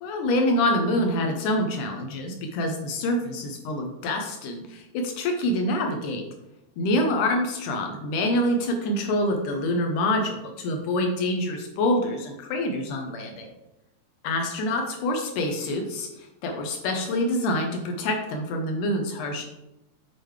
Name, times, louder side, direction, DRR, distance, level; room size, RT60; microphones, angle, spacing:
voice 1, 0.0-6.2 6.8-13.5 14.2-19.5, left 1 dB, 75° left, 3 dB, 2.0 m, -26 dB
7.6 x 6.7 x 3.2 m, 0.92 s
omnidirectional pair, 4.5 m